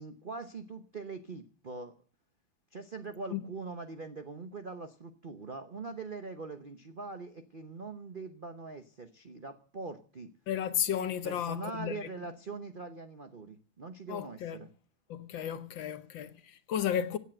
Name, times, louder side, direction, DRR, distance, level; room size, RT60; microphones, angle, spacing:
voice 1, 0.0-1.9 2.7-10.3 11.2-14.7, right 4 dB, 50° right, 0.6 m, -42 dB
voice 2, 10.5-12.1 14.1-14.6 15.1-17.2, left 9 dB, 65° left, 1.6 m, -33 dB
16.5 x 8.5 x 7.7 m
omnidirectional pair, 2.4 m